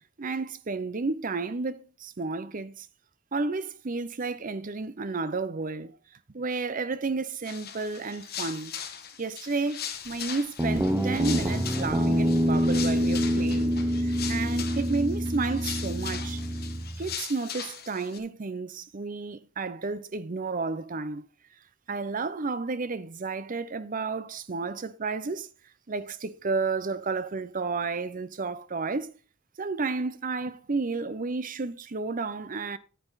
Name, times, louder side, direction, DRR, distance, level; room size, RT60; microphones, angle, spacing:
voice 1, 0.2-2.9 3.3-5.9 6.3-8.7 9.2-16.4 17.0-21.2 21.9-25.5 25.9-29.1 29.6-32.8, right 4 dB, 40° right, 0.7 m, -32 dB
sound 1, 7.4-18.2, left 9 dB, 50° left, 1.5 m, -39 dB
Guitar, 10.6-17.1, equal, 10° right, 0.9 m, -26 dB
9.4 x 8.8 x 4.0 m
head